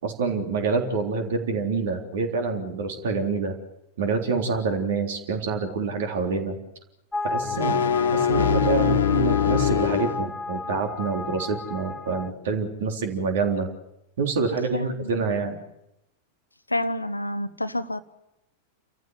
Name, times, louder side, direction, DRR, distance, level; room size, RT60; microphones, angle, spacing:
voice 1, 0.0-3.6 4.0-6.6 7.2-7.8 8.1-13.7 14.2-15.6, right 4 dB, 60° right, 4 dB, 3.6 m, -26 dB
sound 1, 7.1-12.3, left 3 dB, 5° left, 0.8 m, -32 dB
sound 2, 7.4-10.2, left 9 dB, 65° left, 1.6 m, -23 dB
voice 2, 14.7-15.1 16.7-18.0, left 1 dB, 85° left, 13 dB, 1.0 m, -28 dB
29.5 x 14.5 x 8.1 m, 0.87 s
figure-of-eight pair, 90°, 0 cm